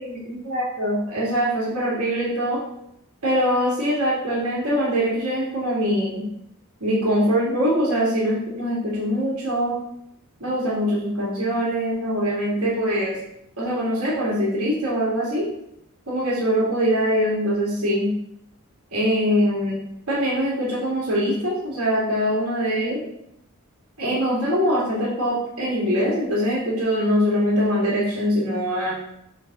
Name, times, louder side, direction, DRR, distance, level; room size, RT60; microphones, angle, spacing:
voice 1, 0.0-2.6 3.2-6.3 6.8-9.8 10.4-13.2 13.6-15.4 16.1-18.1 18.9-19.8 20.1-23.0 24.0-28.9, equal, 75° right, -8 dB, 2.5 m, -23 dB
6.9 x 3.7 x 6.1 m, 0.79 s
head